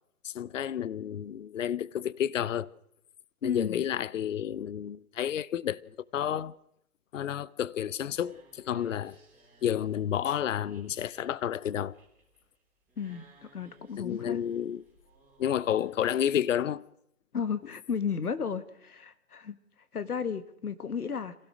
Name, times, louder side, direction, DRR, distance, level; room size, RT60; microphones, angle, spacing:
voice 1, 0.2-2.7 3.4-6.5 7.1-9.2 9.6-11.9 14.0-14.8 15.4-16.9, left 10 dB, 60° left, 0.8 m, -30 dB
voice 2, 3.4-3.8 13.0-14.4 17.3-19.6 19.9-21.4, left 6 dB, 85° left, 1.8 m, -33 dB
sound 1, 7.6-16.7, right 2 dB, 5° right, 4.2 m, -61 dB
26.5 x 16.5 x 6.3 m
hypercardioid pair, 150°, 44 cm